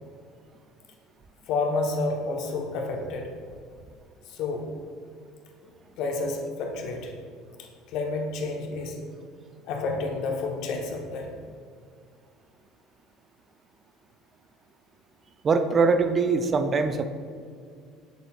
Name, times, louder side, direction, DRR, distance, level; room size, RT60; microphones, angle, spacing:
voice 1, 1.5-3.3 4.3-4.7 6.0-7.1 7.9-9.0 9.7-11.3, left 3 dB, 60° left, 2 dB, 1.0 m, -29 dB
voice 2, 15.4-17.0, right 4 dB, 35° right, 9 dB, 0.5 m, -22 dB
8.1 x 6.8 x 2.4 m, 2.1 s
figure-of-eight pair, 60°, 0 cm